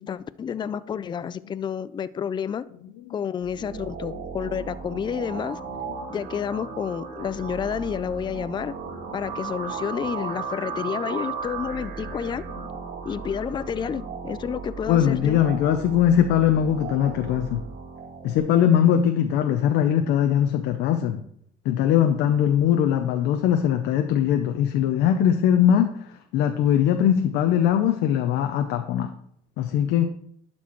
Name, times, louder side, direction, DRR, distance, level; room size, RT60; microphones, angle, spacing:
voice 1, 0.1-2.6 3.1-5.6 6.1-8.7 9.1-12.4 13.0-15.4, left 7 dB, 25° left, 15 dB, 0.4 m, -30 dB
sound 1, 3.4-18.4, right 5 dB, 65° right, 1.5 m, -35 dB
voice 2, 14.9-17.6 18.2-21.2 21.6-29.1 29.6-30.1, left 9 dB, 90° left, 6 dB, 0.7 m, -21 dB
11.5 x 4.4 x 4.5 m, 0.68 s
cardioid pair, 110°, 17 cm